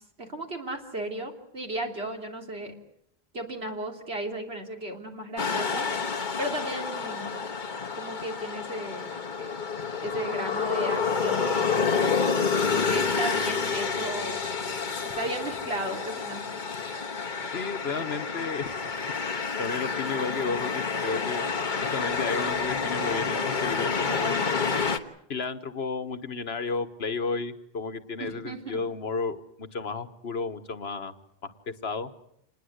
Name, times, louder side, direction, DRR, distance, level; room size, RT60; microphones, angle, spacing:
voice 1, 0.0-2.8 3.3-5.9 6.4-7.3 7.9-9.5 10.0-12.0 12.6-14.4 15.0-16.4 28.2-28.8, right 1 dB, 80° right, 2 dB, 3.5 m, -35 dB
sound 1, 5.4-25.0, left 5 dB, 50° left, 1.4 m, -29 dB
voice 2, 17.5-18.8 19.6-21.5 21.9-24.6 25.3-31.2 31.4-32.1, left 4 dB, 80° left, 10 dB, 1.5 m, -32 dB
27.0 x 20.5 x 8.0 m, 0.73 s
omnidirectional pair, 1.0 m